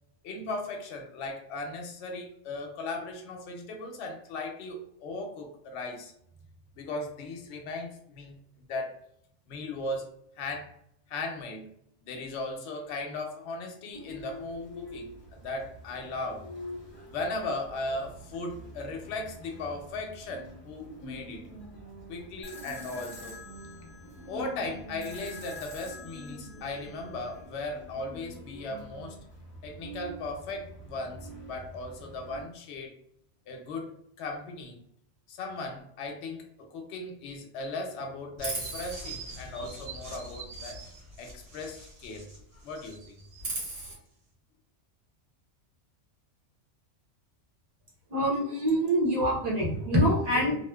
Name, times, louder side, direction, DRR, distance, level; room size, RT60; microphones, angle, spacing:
voice 1, 0.2-6.1 6.7-9.0 9.5-10.1 10.4-10.7 11.1-11.7 12.0-16.5 17.1-21.4 22.1-23.4 24.3-29.2 29.6-32.9 33.5-34.8 35.3-40.8 41.2-42.3 42.5-43.2, left 2 dB, 70° left, 2 dB, 0.8 m, -37 dB
sound 1, 13.9-32.4, equal, 40° left, 0.8 m, -46 dB
sound 2, 22.4-27.4, left 3 dB, 10° left, 1.1 m, -47 dB
Chirp tweet, 38.4-42.4 42.7-43.9, right 2 dB, 80° right, 1.3 m, -39 dB
voice 2, 48.1-50.6, equal, 40° right, -4 dB, 0.7 m, -25 dB
2.6 x 2.1 x 2.2 m, 0.71 s
omnidirectional pair, 1.3 m